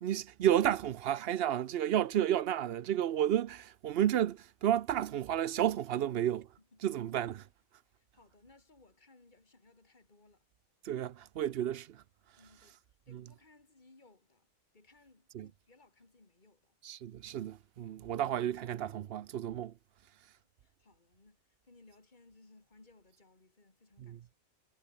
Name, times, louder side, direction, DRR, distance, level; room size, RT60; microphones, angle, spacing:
voice 1, 0.0-6.5 6.8-7.5 10.8-12.0 13.1-13.2 15.3-15.5 16.8-19.7 24.0-24.2, right 11 dB, 60° right, 0.7 m, -32 dB
voice 2, 6.6-7.0 8.0-10.5 12.4-12.8 13.1-14.5 14.7-16.8 20.6-24.3, left 2 dB, 35° left, 3.2 m, -63 dB
omnidirectional pair, 1.4 m